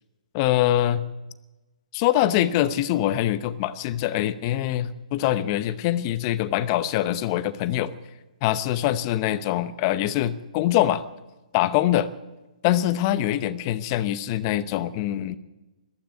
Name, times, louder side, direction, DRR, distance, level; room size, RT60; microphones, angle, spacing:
voice 1, 0.3-1.0 1.9-7.9 8.4-11.0 11.5-12.1 12.6-15.4, left 13 dB, 35° left, 15 dB, 0.8 m, -24 dB
14.5 x 13.0 x 7.6 m, 1.1 s
hypercardioid pair, 140°, 4 cm